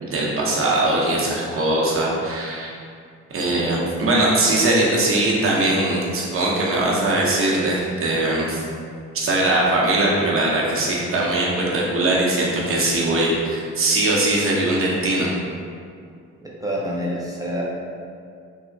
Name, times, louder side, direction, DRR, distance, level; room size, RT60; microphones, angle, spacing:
voice 1, 0.0-2.7 3.3-8.6 9.1-15.3, right 2 dB, 45° right, -4 dB, 0.7 m, -21 dB
voice 2, 16.4-17.6, equal, 15° right, -5 dB, 0.3 m, -27 dB
3.7 x 2.1 x 2.2 m, 2.3 s
cardioid pair, 90°, 30 cm